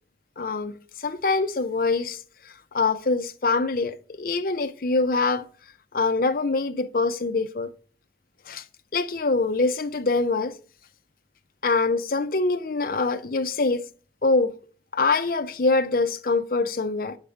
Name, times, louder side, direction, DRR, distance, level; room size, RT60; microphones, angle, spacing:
voice 1, 0.4-2.2 2.7-5.5 5.9-7.7 8.5-8.6 8.9-10.5 11.6-13.8 14.2-14.5 14.9-17.2, left 3 dB, 50° left, 0.6 m, -24 dB
8.1 x 5.0 x 6.7 m
head